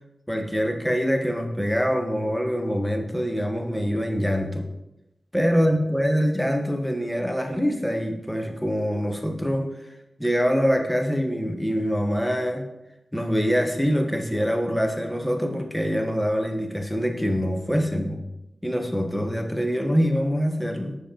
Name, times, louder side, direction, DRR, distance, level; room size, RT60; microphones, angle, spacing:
voice 1, 0.3-4.6 5.3-9.9 10.2-12.7 13.1-18.2 18.6-21.0, equal, 5° left, 3 dB, 1.0 m, -24 dB
6.2 x 5.3 x 2.8 m, 0.90 s
cardioid pair, 40°, 0 cm